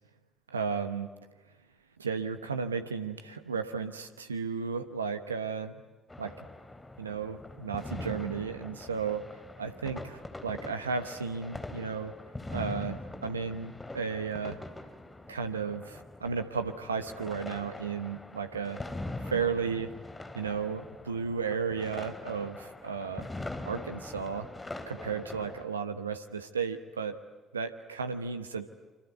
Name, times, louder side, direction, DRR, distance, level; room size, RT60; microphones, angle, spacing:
voice 1, 0.5-1.1 2.0-5.8 6.2-6.5 7.0-9.2 9.6-12.1 12.5-14.6 15.3-18.8 19.3-19.9 20.3-23.3 23.6-24.5 24.9-27.2 27.5-28.7, right 5 dB, 85° right, 8 dB, 1.1 m, -34 dB
sound 1, 6.1-25.6, left 2 dB, 20° left, 3.4 m, -43 dB
27.0 x 26.0 x 8.2 m, 1.2 s
figure-of-eight pair, 45°, 0 cm